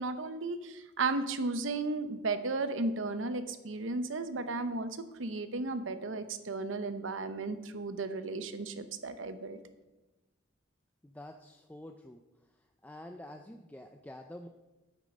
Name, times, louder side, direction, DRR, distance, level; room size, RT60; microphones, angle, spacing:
voice 1, 0.0-9.6, right 3 dB, 85° right, 10 dB, 0.8 m, -34 dB
voice 2, 11.0-12.2 12.8-14.5, left 1 dB, 10° left, 4 dB, 0.4 m, -47 dB
9.1 x 8.2 x 5.3 m, 1.0 s
head